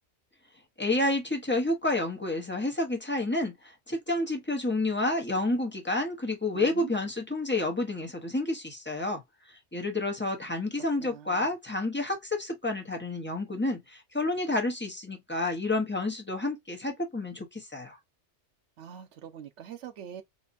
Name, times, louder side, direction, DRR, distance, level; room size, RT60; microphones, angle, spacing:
voice 1, 0.8-3.5 3.9-9.2 9.7-18.0, left 2 dB, 10° left, 0.9 m, -29 dB
voice 2, 6.5-7.0 10.8-11.5 18.8-20.2, right 9 dB, 85° right, 1.0 m, -44 dB
4.2 x 2.3 x 2.5 m
omnidirectional pair, 1.2 m